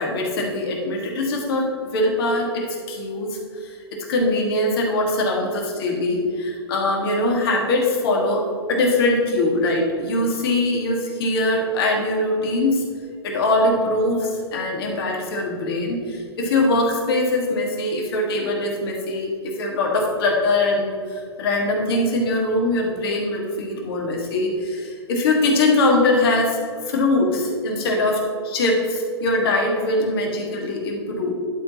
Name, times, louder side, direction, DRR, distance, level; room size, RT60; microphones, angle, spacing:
voice 1, 0.0-8.4 8.7-12.8 13.2-26.6 26.9-28.2 28.4-31.3, left 2 dB, 60° left, 0 dB, 2.1 m, -22 dB
11.5 x 4.0 x 4.2 m, 2.1 s
hypercardioid pair, 120°, 14 cm